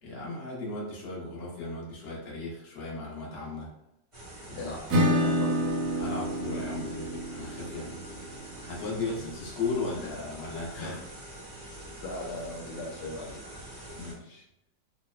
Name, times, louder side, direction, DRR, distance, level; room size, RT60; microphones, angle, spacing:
voice 1, 0.0-3.7 4.5-4.8 6.0-8.0 8.6-11.0 13.9-14.4, left 3 dB, 55° left, -4 dB, 0.7 m, -36 dB
sound 1, 4.1-14.1, right 1 dB, 35° right, 0.5 m, -45 dB
voice 2, 4.5-5.7 8.9-9.3 10.0-10.1 10.8-11.0 12.0-13.4, left 1 dB, 75° left, 0 dB, 1.2 m, -38 dB
Acoustic guitar / Strum, 4.9-10.3, equal, 70° right, 1.0 m, -30 dB
3.0 x 2.0 x 2.2 m, 0.80 s
omnidirectional pair, 1.9 m